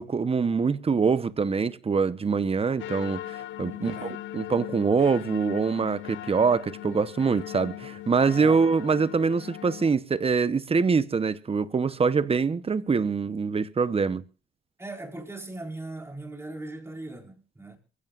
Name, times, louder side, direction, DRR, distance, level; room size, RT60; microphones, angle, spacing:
voice 1, 0.0-4.0 4.3-14.2, right 5 dB, 30° right, 1.0 m, -24 dB
sound 1, 2.8-9.9, left 14 dB, 70° left, 0.7 m, -39 dB
voice 2, 3.7-4.2 8.4-8.6 14.8-17.8, right 2 dB, 15° right, 4.4 m, -39 dB
23.5 x 16.0 x 2.5 m
cardioid pair, 90°, 20 cm